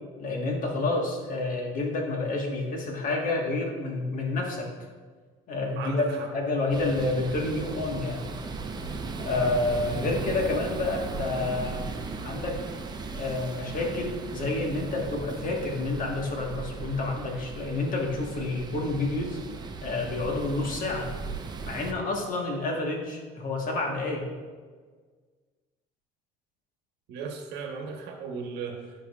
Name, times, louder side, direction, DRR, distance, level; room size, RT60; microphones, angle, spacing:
voice 1, 0.2-4.7 5.5-8.3 9.2-11.9 12.2-12.6 13.1-19.4 19.8-21.1 21.6-24.3, left 2 dB, 50° left, 0 dB, 1.4 m, -29 dB
voice 2, 5.8-6.3 27.1-28.9, right 5 dB, 80° right, 3 dB, 1.1 m, -36 dB
sound 1, 6.7-21.9, right 4 dB, 25° right, 0.7 m, -37 dB
13.0 x 4.9 x 2.3 m, 1.5 s
cardioid pair, 120°, 17 cm